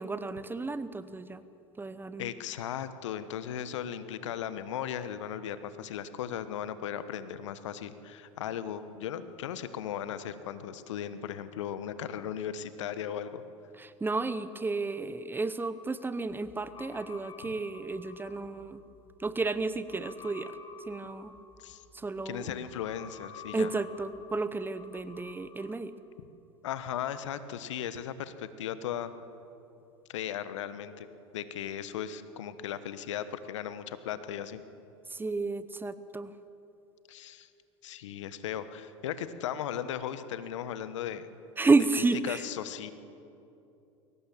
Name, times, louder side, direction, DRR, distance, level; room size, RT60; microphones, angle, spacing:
voice 1, 0.0-1.4 1.8-2.3 13.8-18.8 19.2-20.5 20.9-21.3 21.9-22.5 23.5-25.9 35.1-36.3 41.6-42.4, right 3 dB, 15° right, 14 dB, 0.9 m, -31 dB
voice 2, 2.2-13.4 21.6-21.8 22.2-23.7 26.6-29.1 30.1-31.1 31.3-34.6 37.1-37.5 37.8-41.3 42.2-42.9, left 9 dB, 70° left, 13 dB, 1.2 m, -37 dB
sound 1, 16.3-25.8, left 6 dB, 25° left, 2.3 m, -51 dB
22.5 x 18.0 x 7.4 m, 2.8 s
hypercardioid pair, 85°, 16 cm